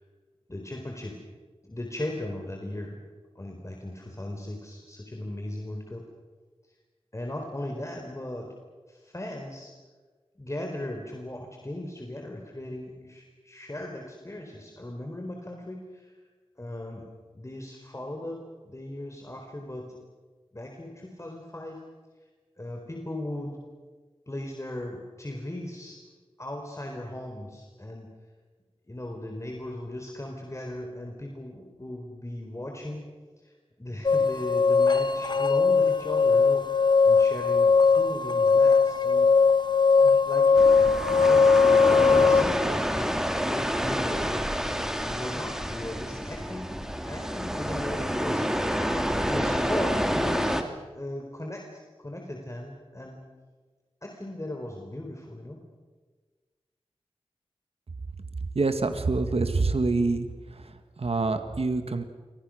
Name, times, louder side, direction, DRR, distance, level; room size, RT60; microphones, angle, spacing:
voice 1, 0.5-1.2 1.6-3.0 3.4-6.0 7.1-8.5 8.9-9.7 10.4-16.1 16.6-17.1 17.3-18.4 18.7-20.0 20.5-21.8 22.6-23.6 24.3-26.0 26.4-28.1 28.9-33.0 33.4-33.5 33.8-36.6 37.0-39.3 40.0-40.5 41.1-41.5 41.8-43.0 43.4-44.5 45.0-46.7 47.0-48.7 49.1-53.2 54.0-55.6, left 1 dB, 30° left, 2 dB, 4.2 m, -37 dB
sound 1, 34.0-42.4, left 5 dB, 45° left, 1.3 m, -20 dB
sound 2, 40.6-50.6, equal, 5° right, 2.8 m, -28 dB
voice 2, 58.6-60.3 60.5-62.0, right 3 dB, 70° right, 8 dB, 1.9 m, -26 dB
28.5 x 24.5 x 6.5 m, 1.4 s
wide cardioid pair, 60°, 11 cm